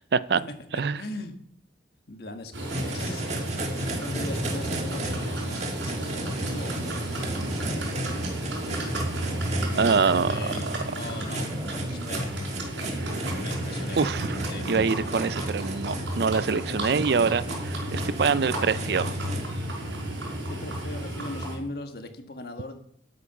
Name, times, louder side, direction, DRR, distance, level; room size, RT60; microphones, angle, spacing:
voice 1, 1.0-1.4 2.1-7.0 10.3-10.6 10.9-12.3 13.3-14.0 14.5-14.7 16.4-17.1 20.5-22.8, left 2 dB, 55° left, 6 dB, 1.5 m, -40 dB
Livestock farm animals working animals, 2.5-21.6, right 1 dB, 90° right, 5.1 m, -32 dB
sound 1, 2.7-19.4, right 1 dB, 40° right, 1.7 m, -36 dB
Growling, 6.2-13.5, equal, 20° right, 2.6 m, -40 dB
voice 2, 9.8-10.8 14.0-19.2, right 5 dB, 60° right, 17 dB, 0.4 m, -25 dB
12.5 x 8.5 x 5.9 m, 0.67 s
head